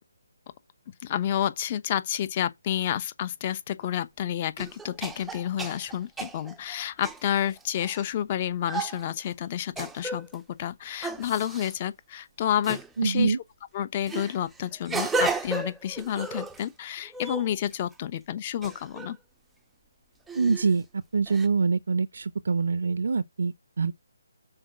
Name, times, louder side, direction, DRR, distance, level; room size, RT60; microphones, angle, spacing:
voice 1, 1.0-13.4 13.7-19.2, left 10 dB, 30° left, 0.8 m, -30 dB
sound 1, 3.8-3.9 4.6-8.0 8.7-9.0 9.8-10.4 11.0-11.7 12.6-12.9 14.1-16.7 17.0-17.9 18.6-19.1 20.3-20.7 21.3-21.5, right 3 dB, 5° right, 0.6 m, -34 dB
voice 2, 13.0-13.4 20.3-23.9, right 4 dB, 65° right, 0.5 m, -25 dB
6.3 x 4.5 x 5.9 m
hypercardioid pair, 160°, 0 cm